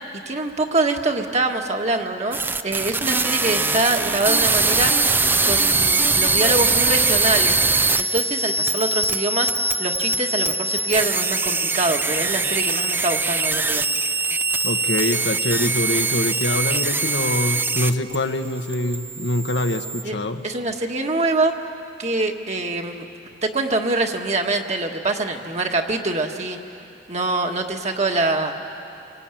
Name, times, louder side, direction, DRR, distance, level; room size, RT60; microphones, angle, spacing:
voice 1, 0.2-2.4 2.6-5.0 5.3-7.6 8.0-13.8 20.0-20.2 20.4-21.6 22.0-23.1 23.4-26.6 27.1-28.5, right 2 dB, 40° right, 3 dB, 1.7 m, -24 dB
sound 1, 2.3-18.2 18.5-20.0, right 3 dB, 10° right, 0.5 m, -22 dB
voice 2, 14.6-20.4, left 1 dB, 90° left, 5 dB, 1.4 m, -24 dB
28.0 x 23.0 x 9.2 m, 2.7 s
head